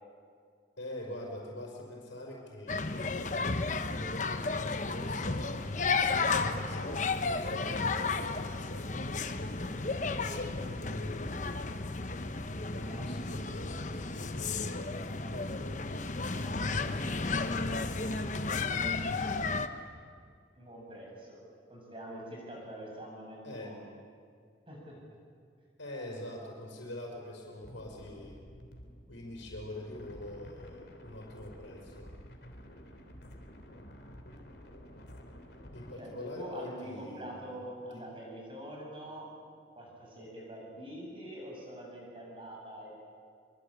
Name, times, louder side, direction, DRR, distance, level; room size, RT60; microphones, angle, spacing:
voice 1, 0.8-5.6 6.6-11.4 12.1-15.9 16.3-18.3 23.4-23.8 25.8-28.4 29.1-32.1 35.7-37.7 37.9-38.1, left 1 dB, 85° left, -2 dB, 5.5 m, -45 dB
sound 1, 2.7-19.7, left 3 dB, 40° left, 1.1 m, -33 dB
voice 2, 20.5-21.4 21.7-23.9 24.7-25.0 36.0-39.3 39.8-43.0, right 1 dB, 30° right, -2 dB, 7.6 m, -44 dB
sound 2, 27.6-35.9, equal, 55° left, 3.4 m, -51 dB
25.0 x 25.0 x 8.6 m, 2.2 s
head